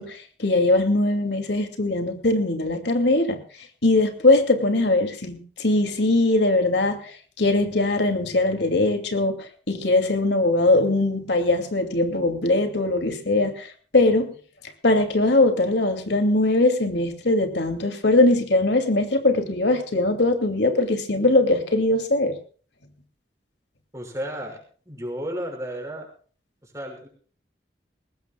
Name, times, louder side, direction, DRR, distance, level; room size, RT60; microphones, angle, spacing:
voice 1, 0.0-3.4 3.8-14.4 14.8-22.4, left 2 dB, 85° left, 6 dB, 2.6 m, -21 dB
voice 2, 23.9-24.6 24.9-26.1 26.6-27.1, equal, 15° right, 2 dB, 5.7 m, -33 dB
21.5 x 19.0 x 2.4 m, 0.42 s
head